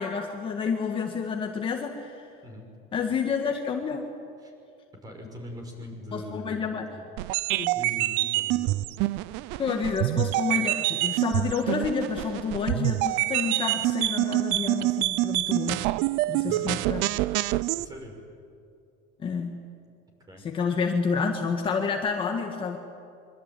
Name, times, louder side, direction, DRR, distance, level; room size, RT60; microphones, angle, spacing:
voice 1, 0.0-2.3 2.9-4.1 6.1-6.9 7.5-7.7 9.6-15.9 16.3-17.1 19.2-19.6 20.4-22.8, left 5 dB, 25° left, 2 dB, 1.8 m, -29 dB
voice 2, 5.0-7.0 7.7-8.7 16.4-16.7 17.8-18.2 20.3-20.4, equal, 20° right, 3 dB, 6.1 m, -41 dB
sound 1, 7.2-17.8, right 18 dB, 65° right, 0.6 m, -26 dB
24.5 x 24.0 x 9.3 m, 2.5 s
cardioid pair, 160°, 19 cm